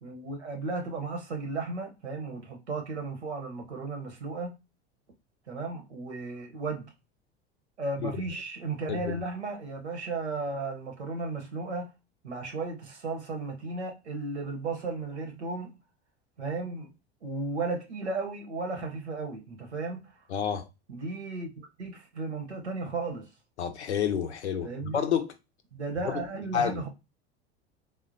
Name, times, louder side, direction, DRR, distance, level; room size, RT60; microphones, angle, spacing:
voice 1, 0.0-4.5 5.5-6.9 7.8-11.9 12.2-15.8 16.4-16.9 17.2-20.1 20.9-23.3 24.6-25.0 25.7-26.9, right 3 dB, 85° right, 1.0 m, -35 dB
voice 2, 8.9-9.2 20.3-20.7 23.6-25.3 26.0-26.2 26.5-26.8, left 8 dB, 85° left, 0.6 m, -29 dB
3.6 x 2.1 x 2.6 m
hypercardioid pair, 75°, 33 cm